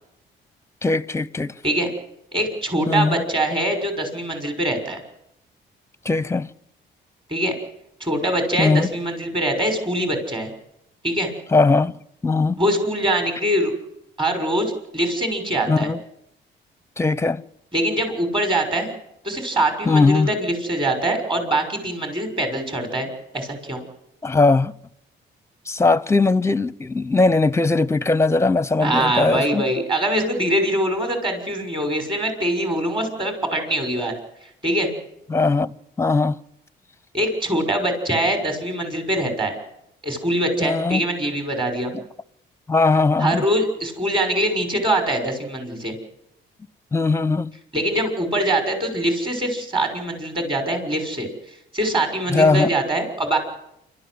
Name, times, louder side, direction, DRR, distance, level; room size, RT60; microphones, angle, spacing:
voice 1, 0.8-1.5 2.9-3.2 6.0-6.5 8.6-8.9 11.5-11.9 12.2-12.6 15.7-16.0 17.0-17.4 19.8-20.3 24.2-24.7 25.7-29.6 35.3-36.4 40.6-41.0 41.9-42.0 42.7-43.4 46.9-47.5 52.3-52.7, left 3 dB, 15° left, 0.7 m, -19 dB
voice 2, 2.3-5.0 7.3-7.5 8.0-10.5 11.0-11.3 12.6-13.7 14.2-15.9 17.7-18.9 19.2-23.1 23.3-23.8 28.8-34.1 34.6-34.9 37.1-39.6 40.0-41.9 43.2-45.9 47.7-51.3 51.7-53.4, right 1 dB, 25° right, 6.0 m, -23 dB
26.5 x 13.5 x 9.6 m
cardioid pair, 90°, 20 cm